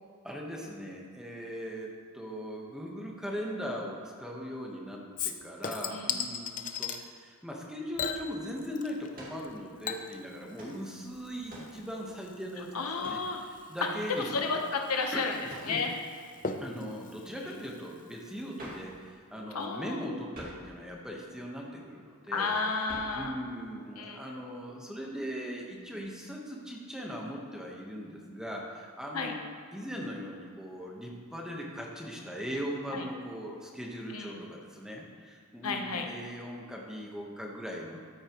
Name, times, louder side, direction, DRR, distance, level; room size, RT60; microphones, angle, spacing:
voice 1, 0.2-13.2 13.5-14.6 15.1-15.8 16.6-22.6 23.1-29.4 29.7-38.0, equal, 5° right, -2 dB, 1.1 m, -39 dB
Chink clink / Liquid, 5.2-7.0 8.0-9.1 9.4-18.4 18.8-18.9, left 6 dB, 35° left, 0.5 m, -40 dB
sound 1, 9.1-9.5 10.6-10.8 11.5-11.8 13.0-13.3 15.5-15.8 18.6-18.9 20.3-20.7 22.9-23.2, right 1 dB, 40° right, 2.2 m, -46 dB
voice 2, 12.7-13.4 14.1-15.3 15.7-15.9 19.5-20.0 22.3-23.4 24.0-24.2 29.1-29.3 32.9-33.0 34.1-34.4 35.6-36.1, left 4 dB, 85° left, 3 dB, 1.0 m, -32 dB
13.5 x 8.7 x 3.0 m, 2.2 s
head